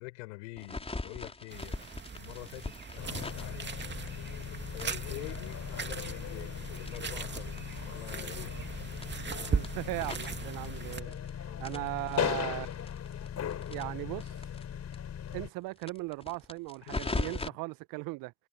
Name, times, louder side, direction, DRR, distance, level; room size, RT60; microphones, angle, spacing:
voice 1, 0.0-1.9 2.1-3.7 4.7-8.6 11.5-11.7 16.9-17.5, left 23 dB, 75° left, 7.4 m, -46 dB
sound 1, 0.6-4.4 4.8-7.8 8.1-8.2 8.4-8.5 8.9-11.3 11.6-14.6 14.9-15.0 15.3-15.4 15.8-17.5, left 2 dB, 15° left, 4.8 m, -40 dB
sound 2, 1.5-11.0, right 5 dB, 30° right, 2.6 m, -39 dB
sound 3, 3.0-15.5, left 9 dB, 45° left, 4.5 m, -38 dB
voice 2, 9.5-12.7 13.7-14.4 15.3-18.3, right 24 dB, 65° right, 1.4 m, -38 dB
hypercardioid pair, 55°, 36 cm